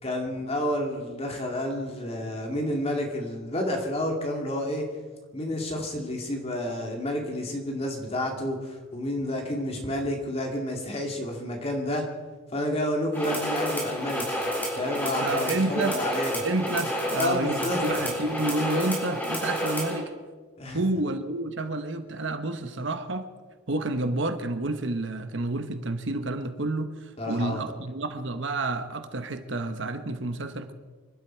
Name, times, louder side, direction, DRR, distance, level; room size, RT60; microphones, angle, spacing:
voice 1, 0.0-4.9 5.3-12.0 12.5-14.5 14.8-16.4 17.2-18.1 20.6-20.8 27.2-27.6, left 1 dB, 30° left, 2 dB, 2.3 m, -30 dB
sound 1, 13.1-20.0, equal, 10° left, 3.9 m, -30 dB
voice 2, 15.2-16.0 16.4-20.1 20.7-23.3 23.7-30.7, right 2 dB, 65° right, 9 dB, 1.1 m, -29 dB
26.0 x 12.0 x 4.5 m, 1.4 s
head